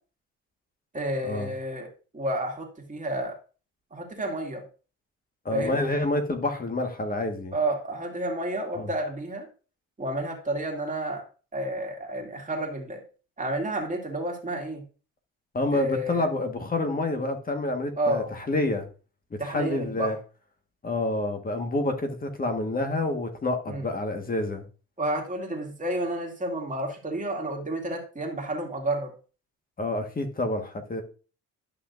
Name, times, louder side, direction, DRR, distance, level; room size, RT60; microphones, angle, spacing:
voice 1, 0.9-1.9 2.1-3.4 3.9-4.6 5.5-5.8 7.5-9.5 10.0-11.2 11.5-13.0 13.4-14.8 15.7-16.2 18.0-18.3 19.4-20.1 23.7-23.9 25.0-29.1, right 1 dB, 25° right, 0 dB, 2.2 m, -30 dB
voice 2, 5.4-7.5 8.8-8.9 15.5-18.9 19.3-20.2 20.8-24.6 29.8-31.0, left 2 dB, 30° left, 5 dB, 1.6 m, -28 dB
11.0 x 5.9 x 2.6 m, 0.36 s
cardioid pair, 90°, 30 cm